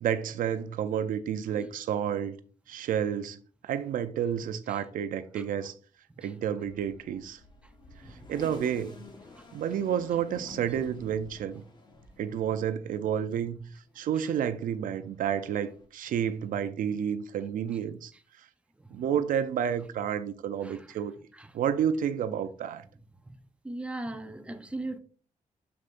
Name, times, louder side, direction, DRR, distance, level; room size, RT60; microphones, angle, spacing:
voice 1, 0.0-2.4 2.7-3.4 3.6-5.7 6.2-7.4 8.3-9.0 9.5-11.6 12.2-13.6 14.0-18.1 18.9-21.1 21.5-22.8, right 9 dB, 85° right, 0.6 m, -30 dB
sound 1, 6.6-13.5 13.9-15.9, left 2 dB, 35° left, 1.4 m, -51 dB
voice 2, 23.6-25.0, right 2 dB, 10° right, 0.8 m, -38 dB
7.1 x 6.3 x 2.6 m
cardioid pair, 105°, 14 cm